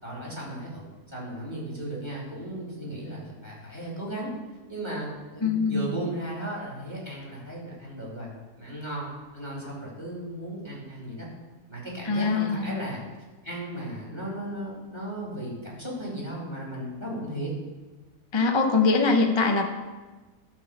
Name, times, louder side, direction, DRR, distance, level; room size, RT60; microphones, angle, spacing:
voice 1, 0.0-4.3 4.7-8.3 8.6-11.3 11.7-13.0 13.4-17.5, right 1 dB, 15° right, -5 dB, 2.7 m, -36 dB
voice 2, 5.4-5.9 12.1-12.8 18.3-19.7, left 4 dB, 30° left, 3 dB, 0.5 m, -23 dB
12.0 x 4.3 x 7.1 m, 1.3 s
omnidirectional pair, 1.6 m